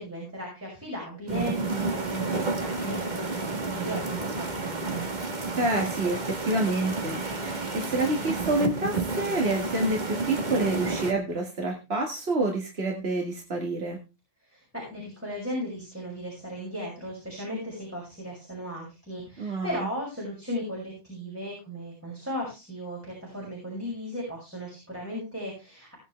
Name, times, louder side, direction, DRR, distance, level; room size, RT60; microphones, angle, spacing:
voice 1, 0.0-5.0 14.4-26.0, equal, 10° right, -4 dB, 6.6 m, -36 dB
sound 1, 1.3-11.1, right 3 dB, 45° right, 1.6 m, -31 dB
voice 2, 5.6-14.0 19.4-19.9, right 2 dB, 65° right, 1 dB, 2.3 m, -28 dB
19.0 x 9.3 x 3.3 m, 0.28 s
omnidirectional pair, 1.1 m